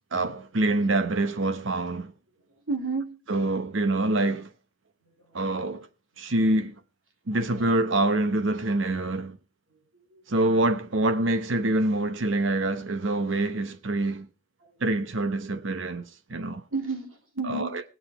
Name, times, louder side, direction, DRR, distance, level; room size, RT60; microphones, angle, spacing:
voice 1, 0.1-2.1 3.3-4.5 5.3-5.9 6.2-6.7 7.3-9.4 10.3-14.3 14.8-16.0 16.3-16.6 17.4-17.8, right 2 dB, 70° right, 0.9 m, -25 dB
voice 2, 2.7-3.2 5.3-5.4 7.9-8.0 9.9-10.2 14.6-14.7 16.7-17.8, right 3 dB, 85° right, 2.9 m, -32 dB
20.5 x 7.0 x 4.7 m
head